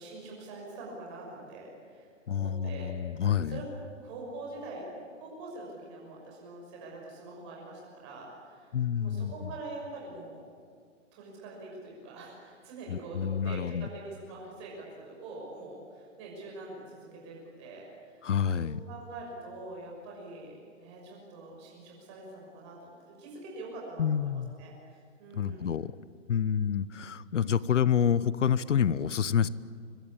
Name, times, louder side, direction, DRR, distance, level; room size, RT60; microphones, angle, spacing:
voice 1, 0.0-3.6 4.0-4.9 5.2-8.7 9.0-10.4 11.1-18.3 18.6-25.7, right 2 dB, 20° right, -2 dB, 6.1 m, -44 dB
voice 2, 2.3-3.6 8.7-9.5 12.9-13.9 18.2-18.8 24.0-24.5 25.3-25.9 26.3-29.5, left 8 dB, 70° left, 18 dB, 1.0 m, -28 dB
25.5 x 24.0 x 8.7 m, 2.1 s
hypercardioid pair, 175°, 39 cm